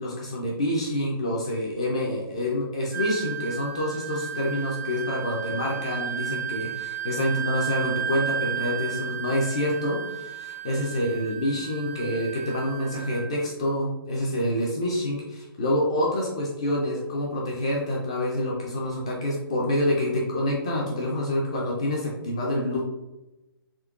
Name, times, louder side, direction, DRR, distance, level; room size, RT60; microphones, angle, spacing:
voice 1, 0.0-22.8, left 1 dB, 15° left, -3 dB, 0.3 m, -27 dB
Wind instrument woodwind instrument, 2.9-13.3, right 10 dB, 50° right, 0.5 m, -33 dB
3.6 x 3.0 x 3.5 m, 0.99 s
hypercardioid pair, 175°, 13 cm